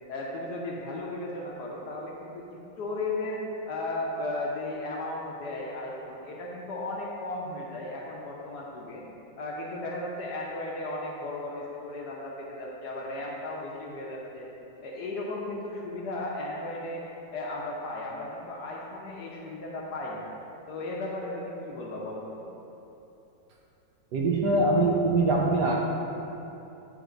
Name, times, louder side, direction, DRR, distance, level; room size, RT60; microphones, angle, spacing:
voice 1, 0.1-9.0 9.4-14.5 14.8-17.0 17.3-20.3 20.7-22.4, left 2 dB, 65° left, -3 dB, 1.1 m, -35 dB
voice 2, 24.1-25.7, right 2 dB, 70° right, -1 dB, 1.1 m, -23 dB
9.0 x 3.3 x 3.8 m, 3.0 s
omnidirectional pair, 2.1 m